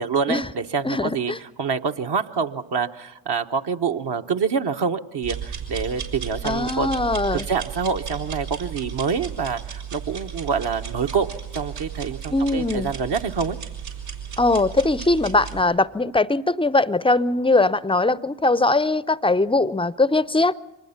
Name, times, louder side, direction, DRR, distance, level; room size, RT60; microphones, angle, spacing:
voice 1, 0.0-6.9 7.3-11.3 11.5-13.6, right 5 dB, 55° right, 1.3 m, -26 dB
voice 2, 0.8-1.4 6.4-7.5 12.3-12.9 14.4-20.5, left 2 dB, 10° left, 0.6 m, -21 dB
sound 1, 5.2-15.6, right 7 dB, 80° right, 5.3 m, -34 dB
24.5 x 20.0 x 5.8 m
hypercardioid pair, 45°, 50 cm